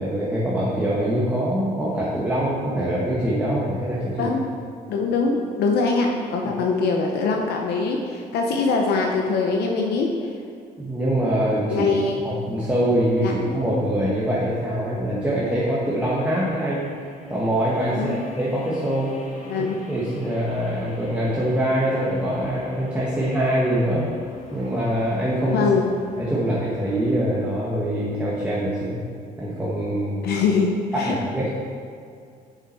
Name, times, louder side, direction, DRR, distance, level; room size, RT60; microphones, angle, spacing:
voice 1, 0.0-4.3 10.8-11.9 12.2-16.9 17.3-19.1 19.6-24.1 24.5-25.7 26.2-29.0 29.4-30.3 30.9-31.5, equal, 10° right, -7 dB, 1.3 m, -24 dB
voice 2, 4.9-10.3 11.7-12.2 13.2-13.3 18.0-18.2 19.5-19.8 25.5-25.9 30.2-31.2, left 4 dB, 75° left, 1 dB, 0.8 m, -23 dB
sound 1, 15.8-27.4, left 1 dB, 40° left, 1.6 m, -44 dB
7.2 x 7.0 x 4.3 m, 2.3 s
cardioid pair, 110°, 17 cm